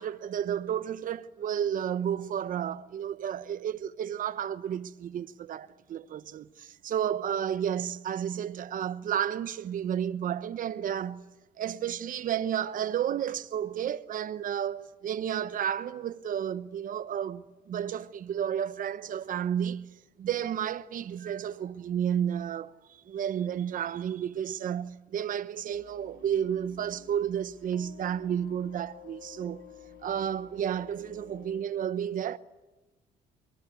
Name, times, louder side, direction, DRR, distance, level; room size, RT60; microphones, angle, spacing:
voice 1, 0.0-11.2 11.6-19.9 20.2-29.6 30.0-32.4, right 9 dB, 55° right, 1.1 m, -32 dB
sound 1, 25.7-31.6, left 9 dB, 75° left, 4.2 m, -52 dB
27.0 x 23.0 x 9.5 m
cardioid pair, 110°, 17 cm